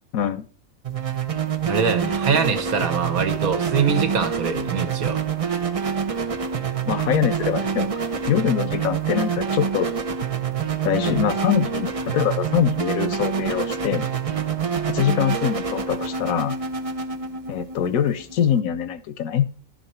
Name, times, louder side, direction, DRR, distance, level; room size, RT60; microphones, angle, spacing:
voice 1, 0.1-0.5 6.9-7.9 8.3-9.9 10.8-14.1 14.9-16.5 17.5-19.5, left 9 dB, 90° left, 13 dB, 1.2 m, -23 dB
sound 1, 0.8-18.6, right 6 dB, 35° right, 0.6 m, -26 dB
voice 2, 1.6-5.2, right 6 dB, 90° right, 8 dB, 1.6 m, -23 dB
11.5 x 5.9 x 4.3 m, 0.41 s
omnidirectional pair, 1.4 m